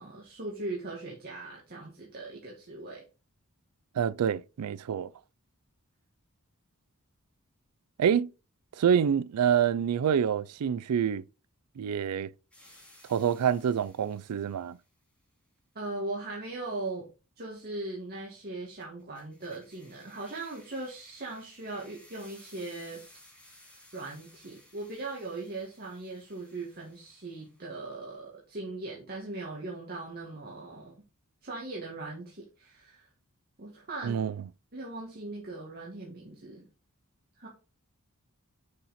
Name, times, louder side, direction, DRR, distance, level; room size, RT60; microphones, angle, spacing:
voice 1, 0.0-3.0 15.8-17.1 17.4-23.0 23.5-31.0 31.4-33.1 33.6-34.2 34.7-36.7 37.4-37.5, right 2 dB, 45° right, 1.8 m, -39 dB
voice 2, 4.0-5.1 8.0-8.3 8.8-11.2 11.8-12.3 13.1-14.8 34.0-34.3, right 8 dB, 90° right, 0.4 m, -27 dB
sound 1, 12.5-14.8 18.8-27.7, left 1 dB, 5° left, 2.7 m, -58 dB
6.6 x 5.7 x 4.2 m
head